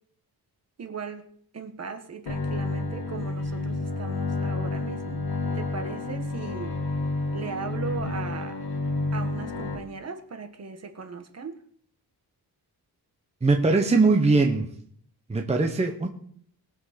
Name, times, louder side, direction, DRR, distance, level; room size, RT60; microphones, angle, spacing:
voice 1, 0.8-1.2 1.5-5.2 5.5-6.8 7.3-8.6 9.1-11.6, right 5 dB, 40° right, 6 dB, 1.3 m, -37 dB
Bowed string instrument, 2.3-9.8, left 3 dB, 70° left, 2.0 m, -30 dB
voice 2, 13.4-14.7 15.3-16.1, right 3 dB, 15° right, 3 dB, 0.9 m, -21 dB
20.5 x 7.5 x 4.3 m, 0.62 s
wide cardioid pair, 175°, 39 cm